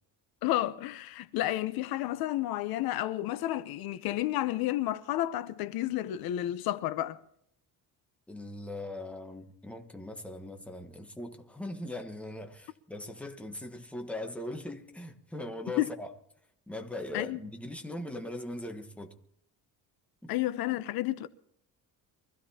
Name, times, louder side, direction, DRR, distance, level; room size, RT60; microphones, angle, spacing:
voice 1, 0.4-7.2 15.8-15.9 17.1-17.4 20.3-21.3, left 14 dB, 80° left, 0.9 m, -31 dB
voice 2, 8.3-16.1 16.7-19.2 20.2-20.3, left 1 dB, 5° left, 1.2 m, -40 dB
24.0 x 15.0 x 2.9 m
cardioid pair, 160°, 36 cm